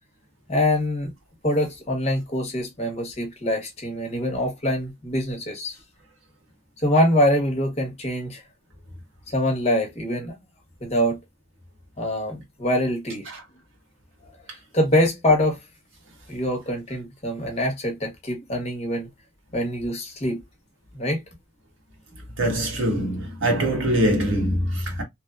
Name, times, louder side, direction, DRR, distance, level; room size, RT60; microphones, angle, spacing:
voice 1, 0.5-1.1 1.4-5.8 6.8-8.4 9.3-10.3 10.8-11.2 12.0-13.3 14.7-15.6 16.3-19.1 19.5-20.4 20.9-21.2, left 1 dB, 35° left, 0.9 m, -24 dB
voice 2, 22.4-25.0, right 1 dB, 80° right, 1.1 m, -23 dB
3.1 x 2.0 x 2.3 m
head